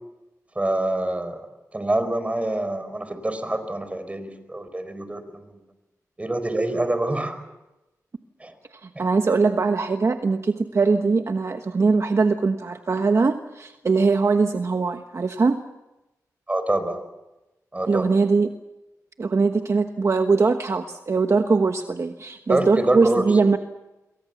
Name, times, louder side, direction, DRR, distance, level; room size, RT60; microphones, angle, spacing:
voice 1, 0.5-1.5 1.7-5.5 6.2-7.4 8.4-8.5 8.9-9.0 16.5-17.0 17.7-18.1 22.5-23.3, right 1 dB, 20° right, 10 dB, 4.6 m, -26 dB
voice 2, 8.8-15.6 17.9-18.5 19.2-23.6, right 4 dB, 50° right, 6 dB, 1.2 m, -21 dB
27.0 x 23.0 x 7.2 m, 1.0 s
wide cardioid pair, 80°, 6 cm